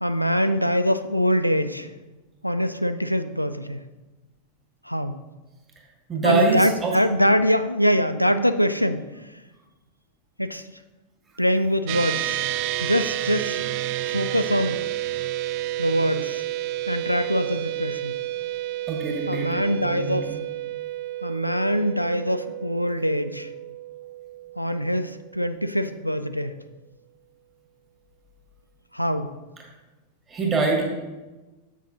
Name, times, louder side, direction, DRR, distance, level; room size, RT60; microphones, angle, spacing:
voice 1, 0.0-1.9 2.4-3.8 4.9-5.2 6.2-9.0 10.4-10.6 11.4-12.4 12.8-13.6 14.1-14.8 15.8-16.4 16.9-18.2 19.3-20.3 21.2-23.5 24.6-26.5 28.9-29.3, equal, 90° left, 10 dB, 0.3 m, -23 dB
voice 2, 6.1-7.0 18.9-20.4 30.3-30.8, right 3 dB, 20° right, -1 dB, 2.0 m, -24 dB
sound 1, 11.9-25.5, right 14 dB, 45° right, 0.3 m, -30 dB
7.7 x 6.3 x 3.9 m, 1.2 s
figure-of-eight pair, 90°, 0 cm